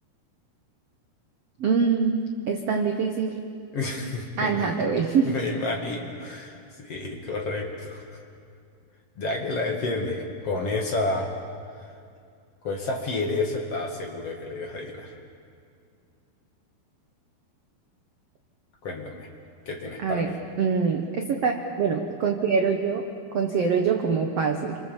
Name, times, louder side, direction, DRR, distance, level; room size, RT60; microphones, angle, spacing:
voice 1, 1.6-3.4 4.4-5.4 20.0-20.3 20.6-23.1 23.3-24.8, right 5 dB, 65° right, 3 dB, 1.6 m, -24 dB
voice 2, 3.7-4.7 5.2-8.2 9.2-11.3 12.6-15.1 18.8-19.3 19.7-20.4, left 2 dB, 45° left, 1 dB, 2.5 m, -30 dB
28.0 x 25.0 x 7.3 m, 2.4 s
omnidirectional pair, 4.5 m